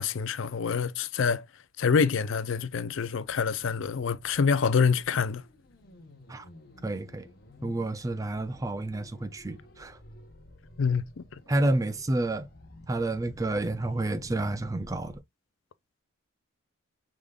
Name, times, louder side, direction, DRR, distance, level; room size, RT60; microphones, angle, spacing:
voice 1, 0.0-1.4 1.8-5.4 10.8-11.2, left 5 dB, 65° left, 0.5 m, -26 dB
sound 1, 3.2-15.2, left 1 dB, 45° left, 1.1 m, -52 dB
voice 2, 6.8-7.3 7.6-10.0 11.5-12.5 12.9-15.2, right 2 dB, 15° right, 0.3 m, -29 dB
5.0 x 3.7 x 2.3 m
head